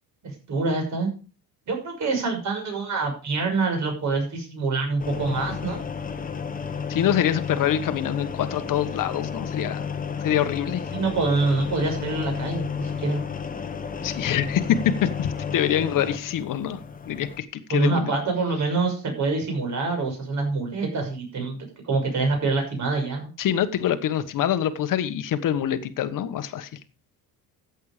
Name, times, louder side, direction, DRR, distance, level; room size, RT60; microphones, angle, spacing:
voice 1, 0.2-1.1 1.7-5.8 10.9-13.2 17.7-21.6 21.8-23.3, right 3 dB, 50° right, 3 dB, 6.1 m, -26 dB
sound 1, 5.0-17.4, left 6 dB, 20° left, 1.3 m, -32 dB
voice 2, 6.9-9.9 10.2-10.9 14.0-16.8 17.1-18.1 23.4-26.8, left 10 dB, 60° left, 11 dB, 1.3 m, -25 dB
14.0 x 8.3 x 5.0 m, 0.34 s
cardioid pair, 145°, 37 cm